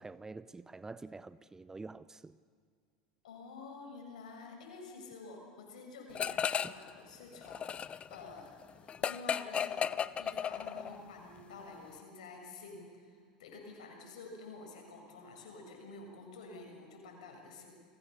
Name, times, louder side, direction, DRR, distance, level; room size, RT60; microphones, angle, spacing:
voice 1, 0.0-2.4 6.6-6.7, right 3 dB, 10° right, 0.6 m, -47 dB
voice 2, 3.2-9.9 10.2-12.9 13.4-17.7, left 3 dB, 65° left, 7.0 m, -49 dB
sound 1, 6.2-6.9 7.2-11.0, left 8 dB, 25° left, 0.7 m, -35 dB
30.0 x 22.0 x 6.9 m
figure-of-eight pair, 80°, 4 cm